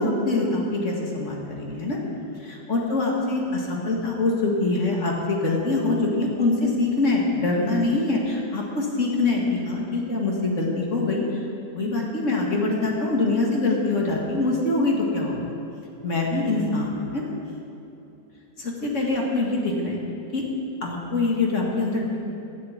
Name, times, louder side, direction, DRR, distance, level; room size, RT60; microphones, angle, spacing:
voice 1, 0.0-2.0 2.4-11.2 11.7-15.5 16.0-17.3 18.6-20.0 20.3-20.4 20.8-22.2, left 2 dB, 45° left, -2 dB, 2.2 m, -24 dB
10.5 x 8.6 x 8.6 m, 2.9 s
omnidirectional pair, 1.8 m